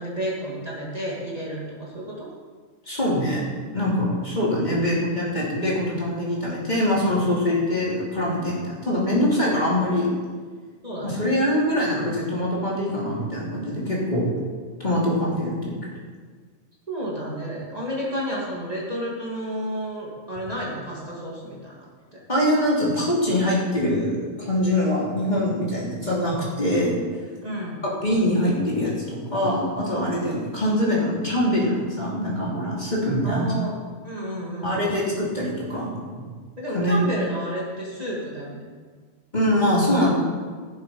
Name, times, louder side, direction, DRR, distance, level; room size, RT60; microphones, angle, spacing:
voice 1, 0.0-2.3 10.8-11.2 16.9-21.9 22.1-22.2 27.4-27.8 33.2-33.8 34.0-35.0 36.6-38.6, equal, 30° right, -5 dB, 2.6 m, -31 dB
voice 2, 2.8-3.4 3.7-10.1 11.0-14.2 14.8-15.7 22.3-27.0 27.8-33.5 34.6-36.2 36.7-37.0 39.3-40.1, left 1 dB, 35° left, -6 dB, 3.3 m, -23 dB
15.0 x 7.6 x 5.6 m, 1.5 s
omnidirectional pair, 1.3 m